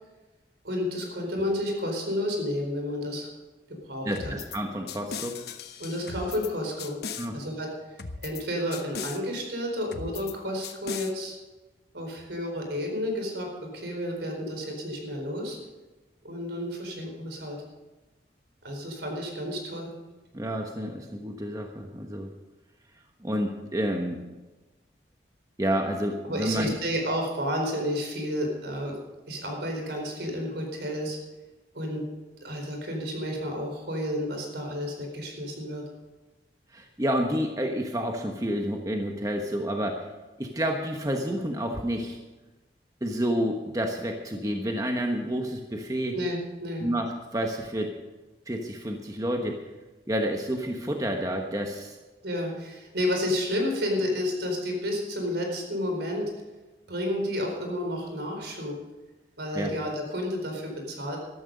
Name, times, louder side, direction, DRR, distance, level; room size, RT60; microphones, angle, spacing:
voice 1, 0.6-3.3 3.7-4.4 5.8-7.0 7.3-7.7 8.2-11.3 11.9-15.6 16.2-17.6 18.6-19.9 26.2-29.0 29.3-31.2 31.7-32.0 32.4-35.8 46.1-46.9 52.2-56.3 56.9-58.8 59.4-61.2, left 1 dB, 75° right, 2 dB, 4.3 m, -31 dB
voice 2, 4.0-5.4 7.2-7.3 20.3-22.3 23.2-24.2 25.6-26.8 36.7-40.0 40.4-42.2 43.0-46.1 46.8-47.9 48.5-49.6 50.1-52.0 59.5-59.7, equal, 20° right, 2 dB, 1.1 m, -29 dB
sound 1, 4.2-4.6 4.9-6.5 6.8-7.3 8.0-8.4 8.7-9.2 9.9-10.3 10.6-11.1, left 5 dB, 65° left, 1.0 m, -37 dB
13.5 x 13.0 x 5.2 m, 1.1 s
head